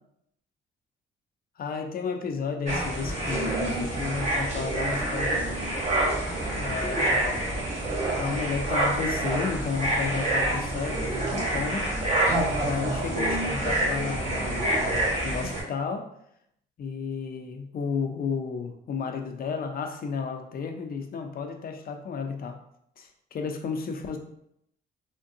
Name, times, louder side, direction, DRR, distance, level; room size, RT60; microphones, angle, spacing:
voice 1, 1.6-5.6 6.6-7.6 8.2-11.9 12.6-16.1 16.8-22.6 23.0-24.2, left 5 dB, 50° left, 4 dB, 0.5 m, -32 dB
sound 1, 2.7-15.6, right 1 dB, 35° right, 1.2 m, -27 dB
3.5 x 2.2 x 2.6 m, 0.75 s
cardioid pair, 90°, 20 cm